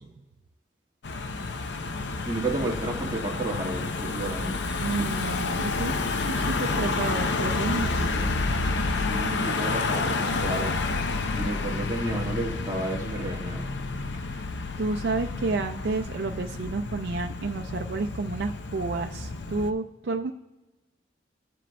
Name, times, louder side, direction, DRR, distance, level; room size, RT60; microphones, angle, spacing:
Car passing by / Engine, 1.0-19.7, left 3 dB, 85° left, 0.6 m, -29 dB
voice 1, 2.2-4.6 5.0-5.1 6.8-6.9 7.7-8.4 8.9-10.8 11.4-13.7, right 2 dB, 20° right, -3 dB, 1.5 m, -32 dB
voice 2, 4.8-5.9 6.2-8.3 14.1-14.4 14.8-20.3, right 3 dB, 80° right, 4 dB, 0.5 m, -30 dB
17.5 x 7.5 x 2.2 m, 1.0 s
head